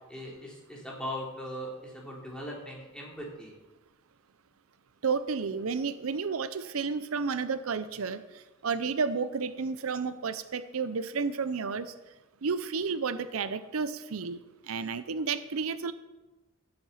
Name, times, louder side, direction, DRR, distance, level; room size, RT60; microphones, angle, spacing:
voice 1, 0.1-3.5, equal, 5° left, -4 dB, 3.2 m, -39 dB
voice 2, 5.0-11.9 12.4-15.9, right 5 dB, 80° right, 13 dB, 0.6 m, -32 dB
16.0 x 7.9 x 5.7 m, 1.1 s
head